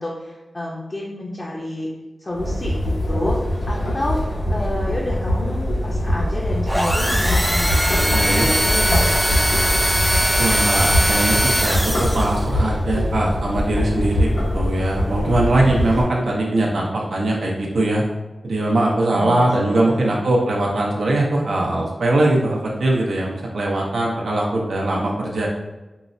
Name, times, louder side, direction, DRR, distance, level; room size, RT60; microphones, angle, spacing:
voice 1, 0.0-1.9 2.2-9.7 19.1-20.3, left 1 dB, 35° left, -4 dB, 0.6 m, -30 dB
sound 1, 2.3-16.0, left 1 dB, 80° left, 1.0 m, -23 dB
sound 2, 6.7-12.5, equal, 5° right, 0.3 m, -21 dB
voice 2, 8.1-8.5 10.4-18.0 18.4-25.5, right 1 dB, 90° right, -2 dB, 0.6 m, -21 dB
4.6 x 2.0 x 2.6 m, 1.1 s
wide cardioid pair, 70°, 0 cm